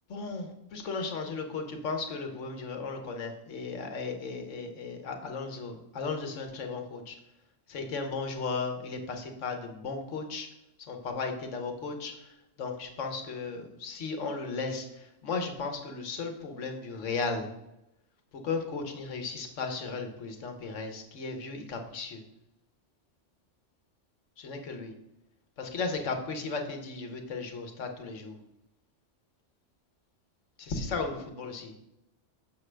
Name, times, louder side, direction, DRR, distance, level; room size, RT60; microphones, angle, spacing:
voice 1, 0.1-7.2 7.7-10.5 10.8-17.5 18.3-22.2 24.4-24.9 25.6-28.4 30.6-31.8, left 4 dB, 85° left, 5 dB, 1.3 m, -35 dB
6.5 x 6.2 x 3.3 m, 0.89 s
omnidirectional pair, 1.2 m